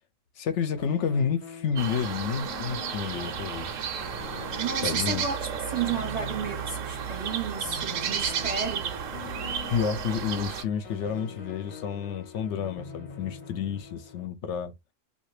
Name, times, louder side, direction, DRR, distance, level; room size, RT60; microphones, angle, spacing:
voice 1, 0.4-3.8 4.8-5.3 9.2-9.3 9.7-14.7, left 7 dB, 70° left, 0.9 m, -30 dB
sound 1, 0.8-14.3, left 6 dB, 40° left, 0.8 m, -44 dB
sound 2, 1.8-10.6, right 8 dB, 85° right, 1.0 m, -32 dB
voice 2, 4.6-8.9, right 5 dB, 40° right, 0.6 m, -33 dB
2.8 x 2.5 x 3.1 m
omnidirectional pair, 1.3 m